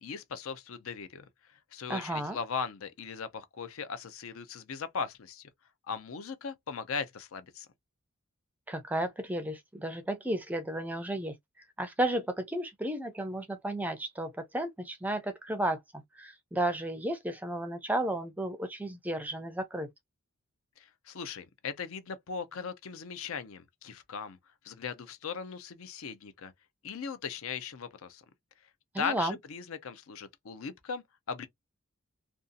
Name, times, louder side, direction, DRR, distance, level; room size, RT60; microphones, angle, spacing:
voice 1, 0.0-1.3 1.7-5.5 5.9-7.7 20.8-24.4 24.6-26.5 26.8-28.2 29.0-31.5, left 6 dB, 75° left, 0.5 m, -38 dB
voice 2, 1.9-2.4 8.7-11.3 11.8-19.9 28.9-29.4, right 1 dB, 5° right, 0.4 m, -33 dB
2.6 x 2.3 x 2.4 m
head